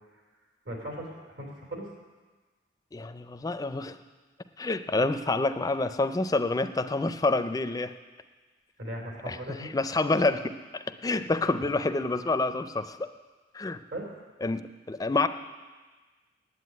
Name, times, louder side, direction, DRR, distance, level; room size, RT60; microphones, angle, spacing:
voice 1, 0.6-1.9 8.8-9.7 11.6-11.7 13.9-14.1, right 1 dB, 80° right, -1 dB, 3.2 m, -38 dB
voice 2, 2.9-4.0 4.6-7.9 9.3-13.1 13.5-13.8 14.4-15.3, left 2 dB, 20° left, 11 dB, 0.4 m, -28 dB
9.5 x 8.2 x 9.4 m, 1.3 s
head